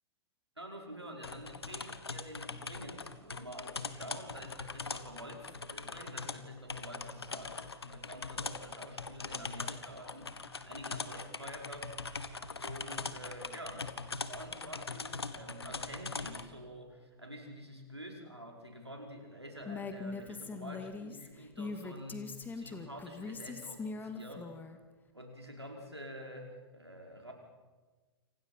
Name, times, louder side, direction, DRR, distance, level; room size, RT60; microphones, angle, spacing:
voice 1, 0.6-24.6 25.1-27.3, equal, 90° right, 1 dB, 5.2 m, -48 dB
sound 1, 1.2-16.4, left 4 dB, 75° left, 1.5 m, -42 dB
Female speech woman speaking, 19.7-24.8, left 4 dB, 15° left, 2.2 m, -42 dB
29.5 x 26.5 x 5.8 m, 1.3 s
figure-of-eight pair, 100°, 13 cm